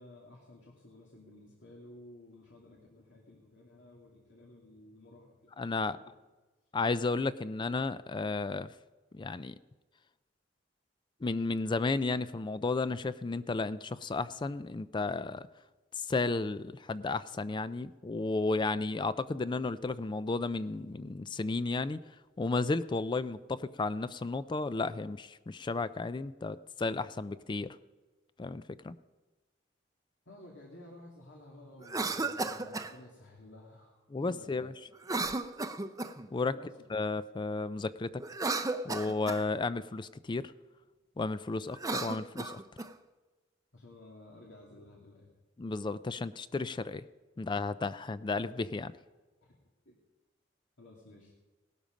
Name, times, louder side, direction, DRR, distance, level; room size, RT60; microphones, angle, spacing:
voice 1, 0.0-5.5 5.8-6.0 30.3-34.7 36.5-36.7 43.7-45.3 49.9-50.0 50.8-51.3, left 1 dB, 80° left, -2 dB, 2.5 m, -53 dB
voice 2, 5.6-6.0 6.7-8.7 9.1-9.5 11.2-15.5 16.0-22.0 22.4-27.8 28.4-29.0 34.1-34.7 36.3-36.5 36.9-38.2 38.8-40.5 41.2-42.6 45.6-47.0 47.4-48.9, left 3 dB, 25° left, 14 dB, 0.4 m, -33 dB
Cough, 31.8-32.9 35.0-36.3 38.2-39.4 41.7-42.9, right 3 dB, 20° right, 0.6 m, -34 dB
18.0 x 12.5 x 5.2 m, 1.2 s
head